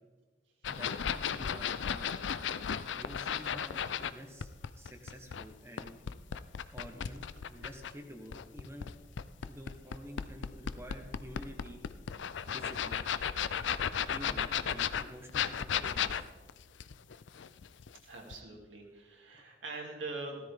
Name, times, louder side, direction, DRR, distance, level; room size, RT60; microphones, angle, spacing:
sound 1, 0.6-4.1 4.4-7.9 8.3-18.0 18.3-18.4, left 8 dB, 70° left, 0.5 m, -35 dB
voice 1, 0.7-2.3 3.0-4.5 4.8-6.0 6.7-8.9 9.4-11.8 12.5-13.1 13.9-16.3, equal, 15° right, 3 dB, 1.3 m, -49 dB
voice 2, 18.0-20.4, right 3 dB, 80° right, 0 dB, 2.6 m, -43 dB
15.5 x 13.5 x 3.6 m, 1.3 s
head